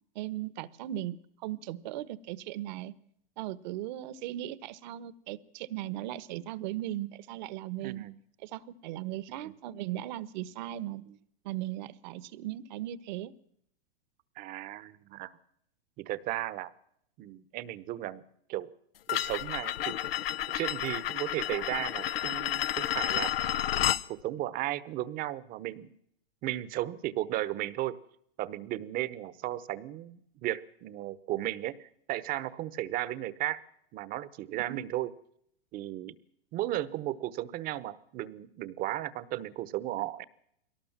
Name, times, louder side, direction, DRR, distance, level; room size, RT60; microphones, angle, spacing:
voice 1, 0.1-1.2 1.4-2.9 3.4-8.0 8.4-11.0 11.4-13.3 34.7-34.9, right 13 dB, 50° right, 17 dB, 1.3 m, -37 dB
voice 2, 7.8-8.1 9.4-9.5 14.4-15.3 16.0-16.7 17.2-18.2 18.5-18.7 19.1-20.0 20.5-23.3 23.8-25.9 26.4-28.0 28.4-33.6 33.9-35.1 35.7-36.1 36.5-40.2, right 14 dB, 30° right, 17 dB, 1.1 m, -35 dB
sound 1, 19.1-24.0, left 12 dB, 80° left, 0.9 m, -31 dB
22.0 x 18.5 x 7.4 m, 0.71 s
hypercardioid pair, 140°, 29 cm